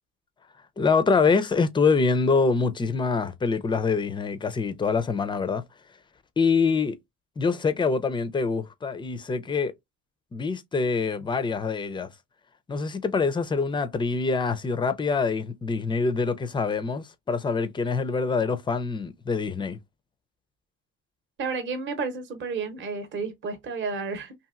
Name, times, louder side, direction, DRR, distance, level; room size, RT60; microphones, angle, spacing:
voice 1, 0.8-5.6 6.4-7.0 7.4-9.7 10.3-12.1 12.7-19.8, left 4 dB, 15° left, 0.4 m, -25 dB
voice 2, 21.4-24.3, right 4 dB, 40° right, 0.8 m, -31 dB
2.8 x 2.6 x 2.4 m
supercardioid pair, 100°, 31 cm